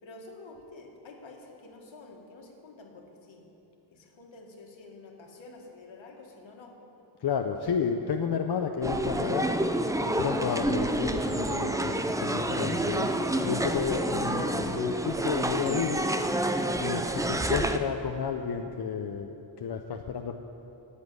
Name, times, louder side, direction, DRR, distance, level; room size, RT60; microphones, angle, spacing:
voice 1, 0.0-3.4 3.9-6.8, left 3 dB, 75° left, 1 dB, 1.9 m, -49 dB
voice 2, 7.2-9.5 10.0-11.9 12.2-13.1 13.4-16.0 16.8-19.3 19.6-20.3, left 7 dB, 55° left, 4 dB, 0.6 m, -31 dB
sound 1, 8.8-17.8, right 1 dB, 10° right, 0.3 m, -28 dB
10.5 x 8.3 x 9.5 m, 2.9 s
wide cardioid pair, 170°, 46 cm